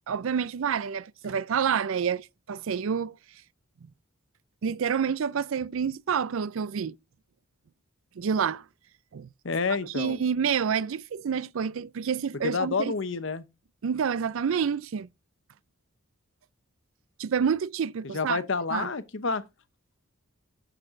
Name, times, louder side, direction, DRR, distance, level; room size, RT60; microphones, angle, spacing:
voice 1, 0.1-3.2 3.8-3.9 4.6-6.9 8.2-8.6 9.1-9.3 9.8-12.9 13.8-15.1 17.2-18.4 18.7-18.9, right 7 dB, 70° right, 0.4 m, -28 dB
voice 2, 9.4-10.2 12.4-13.4 18.1-19.4, left 4 dB, 55° left, 0.8 m, -29 dB
8.7 x 6.5 x 3.7 m
head